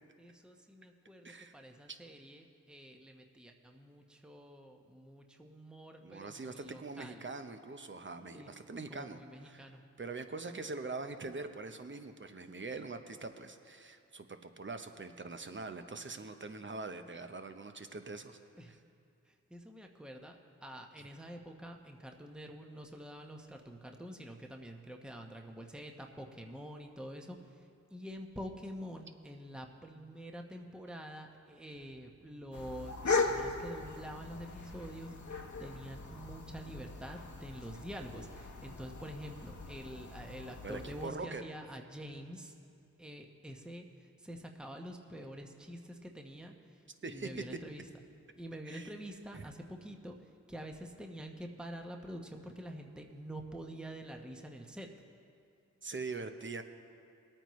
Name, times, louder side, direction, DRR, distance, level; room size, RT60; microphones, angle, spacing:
voice 1, 0.2-7.3 8.3-8.5 8.9-9.8 18.6-18.8 19.2-42.5 43.0-47.9 48.4-54.9, equal, 5° right, 3 dB, 1.1 m, -47 dB
voice 2, 1.2-1.6 1.9-2.0 6.0-9.7 10.0-18.4 21.0-21.1 40.6-41.4 47.0-47.3 48.7-48.9 49.3-49.5 55.8-56.6, right 3 dB, 35° right, 7 dB, 0.9 m, -43 dB
sound 1, 32.5-41.1, left 3 dB, 60° left, 1.2 m, -39 dB
20.5 x 8.9 x 3.2 m, 2.4 s
cardioid pair, 45°, 33 cm